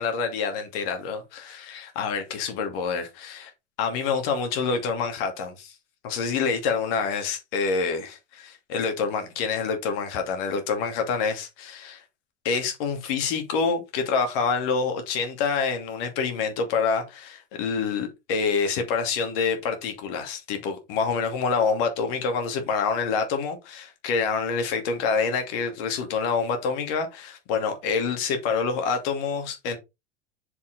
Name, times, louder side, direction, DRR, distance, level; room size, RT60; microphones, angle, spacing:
voice 1, 0.0-3.5 3.8-5.7 6.0-12.0 12.4-29.8, left 5 dB, 55° left, 2.5 m, -27 dB
6.8 x 5.3 x 4.1 m
figure-of-eight pair, 75°, 34 cm